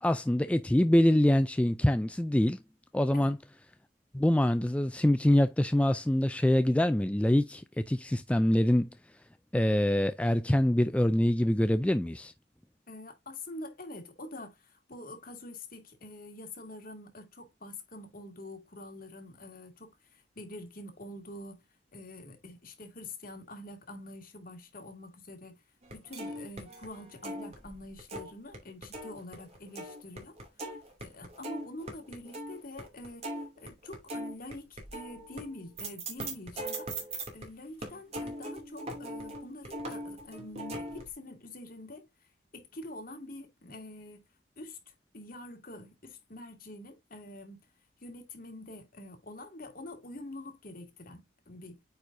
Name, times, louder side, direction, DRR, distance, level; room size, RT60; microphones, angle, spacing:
voice 1, 0.0-2.6 2.9-3.4 4.1-8.9 9.5-12.3, left 1 dB, 5° left, 0.3 m, -25 dB
voice 2, 12.9-21.6 21.9-25.6 25.9-30.4 31.0-36.9 37.3-42.1 42.5-44.3 44.6-47.7 48.0-51.8, left 1 dB, 50° left, 2.2 m, -46 dB
sound 1, 25.8-28.6 28.8-37.5 37.8-41.1, right 1 dB, 35° right, 2.6 m, -40 dB
9.2 x 4.4 x 2.6 m
head